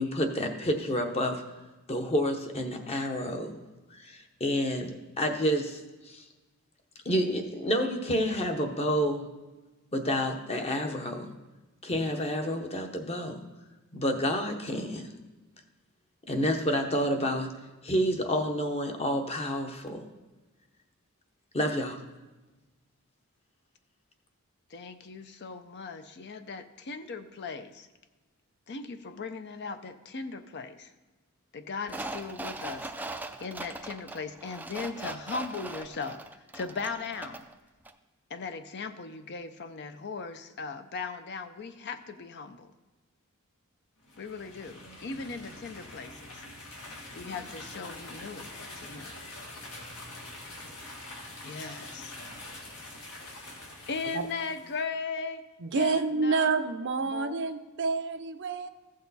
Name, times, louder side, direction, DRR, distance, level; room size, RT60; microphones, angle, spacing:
voice 1, 0.0-1.4 1.9-3.6 3.9-4.9 5.2-5.8 6.1-6.2 7.0-9.2 9.9-11.3 11.8-13.4 13.9-15.0 16.3-17.5 17.8-20.0 21.5-22.0, equal, 30° left, 5 dB, 0.9 m, -29 dB
voice 2, 24.7-27.9 28.7-30.9 31.5-32.9 33.4-36.2 36.5-37.5 38.3-42.7 44.2-46.1 47.1-49.1 51.4-52.1 53.9-55.4 55.7-56.5 57.1-57.4, left 4 dB, 50° left, 9 dB, 0.5 m, -38 dB
sound 1, 31.9-37.5 37.9-38.0, right 2 dB, 10° right, 0.4 m, -40 dB
sound 2, 44.0-54.8, left 2 dB, 75° left, 1.9 m, -45 dB
voice 3, 55.6-58.7, right 4 dB, 55° right, 10 dB, 0.6 m, -28 dB
15.0 x 6.5 x 4.1 m, 1.2 s
head